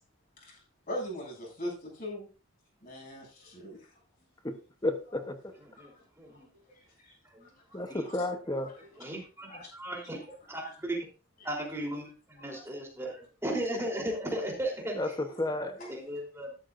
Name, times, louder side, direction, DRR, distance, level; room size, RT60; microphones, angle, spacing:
voice 1, 0.9-2.3 2.8-3.9 5.8-5.9 6.3-7.2 7.4-8.3 8.5-8.7 9.5-9.7 11.4-11.5 12.4-12.6 15.8-15.9, left 1 dB, 45° left, 7.3 m, -42 dB
voice 2, 4.8-5.5 7.7-8.7 15.0-15.8, left 1 dB, 20° left, 0.9 m, -32 dB
voice 3, 5.7-6.5 7.3-8.1 9.0-10.2 10.5-11.1 11.4-15.0 15.9-16.6, right 1 dB, 10° right, 3.5 m, -36 dB
13.0 x 11.5 x 2.6 m
head